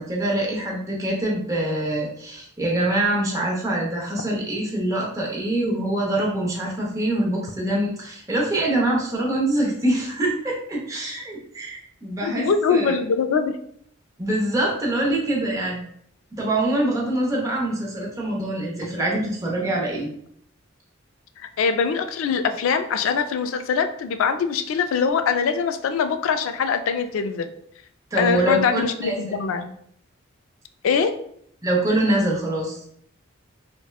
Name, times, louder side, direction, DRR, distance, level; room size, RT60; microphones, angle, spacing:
voice 1, 0.0-13.0 14.2-15.8 16.3-20.1 28.1-29.2 31.6-32.8, right 1 dB, 15° right, -3 dB, 0.7 m, -24 dB
voice 2, 12.2-13.6 21.6-27.5 28.2-29.7 30.8-31.1, left 6 dB, 80° left, 9 dB, 0.3 m, -23 dB
4.1 x 2.1 x 2.3 m, 0.66 s
head